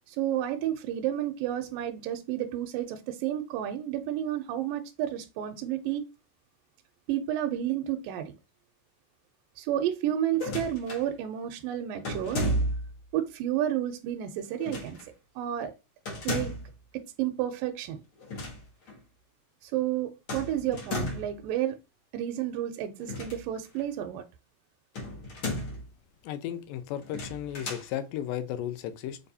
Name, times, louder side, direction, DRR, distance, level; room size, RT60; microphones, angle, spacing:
voice 1, 0.1-6.0 7.1-8.3 9.6-12.4 13.1-15.0 15.4-15.7 16.2-16.5 17.2-18.0 19.6-21.8 22.1-24.2, right 11 dB, 80° right, 2.1 m, -31 dB
sound 1, 10.3-11.1 12.0-13.0 14.6-15.1 16.1-16.7 18.2-18.6 18.9-19.0 20.3-21.4 23.0-23.8 24.9-25.9 27.0-27.9, equal, 55° left, 1.3 m, -33 dB
voice 2, 26.2-29.2, left 11 dB, 80° left, 2.1 m, -34 dB
6.5 x 2.6 x 2.6 m
omnidirectional pair, 4.0 m